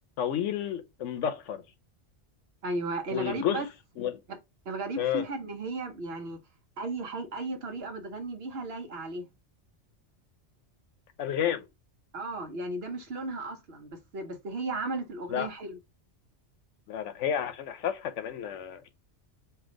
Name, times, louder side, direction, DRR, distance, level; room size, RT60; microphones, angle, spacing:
voice 1, 0.2-1.6 3.1-3.6 4.0-4.2 5.0-5.3 11.2-11.6 15.3-15.5 16.9-18.8, left 9 dB, 85° left, 1.0 m, -30 dB
voice 2, 2.6-3.7 4.3-4.4 4.6-6.4 6.8-9.3 11.5-11.6 12.1-15.8, right 2 dB, 60° right, 1.1 m, -35 dB
3.4 x 2.8 x 3.7 m
omnidirectional pair, 1.2 m